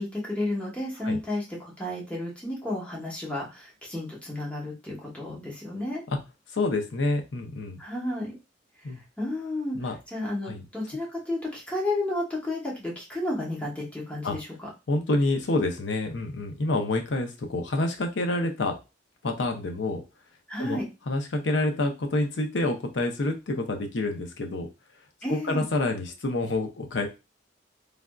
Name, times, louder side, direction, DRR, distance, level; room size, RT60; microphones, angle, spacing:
voice 1, 0.0-6.0 7.8-8.4 9.2-9.8 10.1-14.5 20.5-20.8 25.2-25.6, left 1 dB, 5° left, -4 dB, 1.0 m, -32 dB
voice 2, 6.5-7.8 8.8-9.0 9.7-10.0 10.4-10.6 14.2-14.4 14.9-18.7 19.2-20.0 20.6-20.8 21.1-24.7 25.3-27.1, left 2 dB, 75° left, 4 dB, 0.6 m, -27 dB
3.3 x 2.5 x 2.3 m, 0.27 s
head